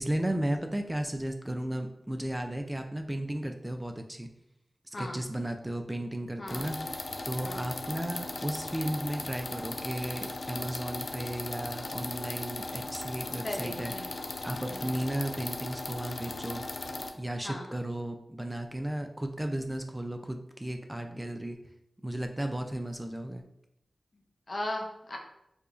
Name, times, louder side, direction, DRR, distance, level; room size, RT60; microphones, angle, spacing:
voice 1, 0.0-4.3 5.0-7.0 7.2-14.0 14.4-16.6 17.1-21.6 22.0-23.4, right 1 dB, 15° right, 5 dB, 0.3 m, -34 dB
voice 2, 4.9-5.2 6.4-6.7 7.4-7.7 13.4-14.1 14.7-15.0 17.4-17.7 24.5-25.2, left 1 dB, 45° left, 1 dB, 0.7 m, -37 dB
sound 1, 6.5-17.1, left 2 dB, 60° left, 0.4 m, -38 dB
4.7 x 2.4 x 2.5 m, 0.81 s
cardioid pair, 50°, 0 cm